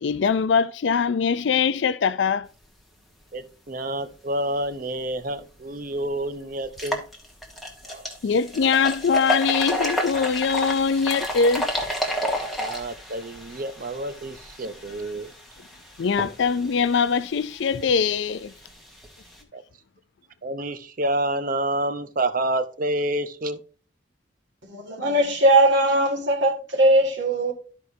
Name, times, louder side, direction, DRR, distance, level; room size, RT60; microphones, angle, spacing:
voice 1, 0.0-2.5 8.2-11.7 16.0-18.5, left 5 dB, 65° left, 0.4 m, -22 dB
voice 2, 3.3-7.0 7.8-8.1 12.6-15.3 19.5-19.6 20.4-23.6, right 1 dB, 45° right, 0.7 m, -28 dB
sound 1, 5.4-5.5 5.9-6.0 6.6-19.4, equal, ahead, 1.3 m, -32 dB
voice 3, 24.6-27.5, right 1 dB, 65° right, 1.7 m, -20 dB
13.0 x 4.8 x 2.7 m
head